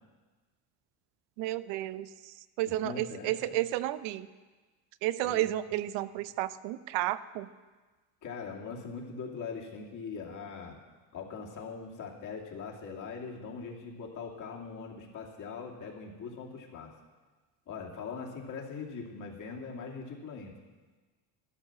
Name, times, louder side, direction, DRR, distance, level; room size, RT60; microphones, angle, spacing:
voice 1, 1.4-2.1 2.6-4.3 5.0-7.5, right 14 dB, 85° right, 15 dB, 0.7 m, -32 dB
voice 2, 2.7-3.5 5.2-5.5 8.2-10.8 11.1-16.9 17.7-20.5, left 5 dB, 50° left, 0 dB, 2.7 m, -41 dB
12.5 x 12.0 x 6.1 m, 1.3 s
cardioid pair, 115°, 41 cm